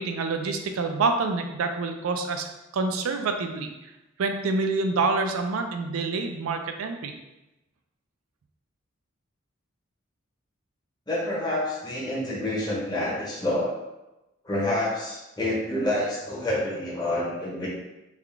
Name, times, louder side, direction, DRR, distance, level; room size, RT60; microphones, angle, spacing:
voice 1, 0.0-2.5 2.7-3.7 4.2-7.1, right 3 dB, 85° right, 5 dB, 0.4 m, -27 dB
voice 2, 11.1-13.7 14.4-17.7, left 1 dB, 20° left, -6 dB, 0.8 m, -28 dB
3.5 x 2.3 x 3.4 m, 0.99 s
head